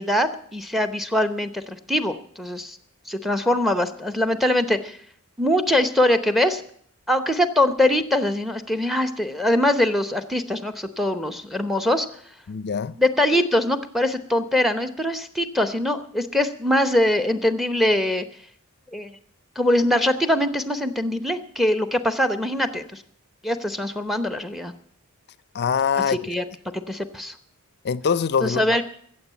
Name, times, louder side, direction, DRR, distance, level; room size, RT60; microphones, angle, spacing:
voice 1, 0.0-2.8 3.1-5.0 5.4-6.6 7.1-12.1 13.0-18.2 18.9-19.1 19.6-23.0 23.4-24.7 26.1-26.4 26.9-27.3 28.4-28.8, left 1 dB, ahead, 0.8 m, -22 dB
voice 2, 12.5-13.0 25.5-26.5 27.8-28.8, left 6 dB, 50° left, 0.5 m, -24 dB
14.5 x 7.7 x 8.2 m
head